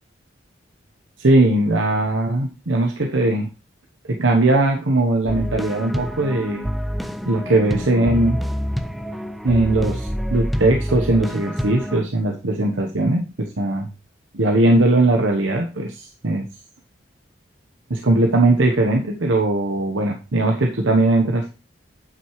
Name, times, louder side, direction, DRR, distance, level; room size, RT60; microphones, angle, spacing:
voice 1, 1.2-3.5 4.1-6.7 7.2-8.4 9.4-13.9 14.3-16.5 17.9-21.5, right 2 dB, 85° right, 3 dB, 1.1 m, -19 dB
sound 1, 5.3-12.0, equal, ahead, 0.5 m, -27 dB
8.9 x 7.9 x 3.2 m, 0.30 s
head